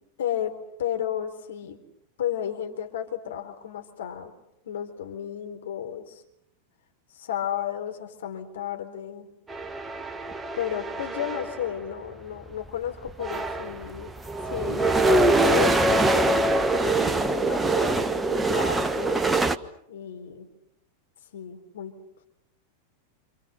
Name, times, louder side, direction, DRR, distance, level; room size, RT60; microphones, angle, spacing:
voice 1, 0.2-0.5 0.8-1.8 2.2-4.3 4.6-6.2 7.1-9.3 10.6-14.1 14.4-19.2 19.9-20.5 21.3-21.9, left 10 dB, 60° left, 5 dB, 4.1 m, -32 dB
sound 1, 9.5-11.7 12.7-12.8 13.1-19.6, right 2 dB, 10° right, 1.3 m, -24 dB
29.0 x 28.5 x 6.9 m, 0.79 s
figure-of-eight pair, 90°, 0 cm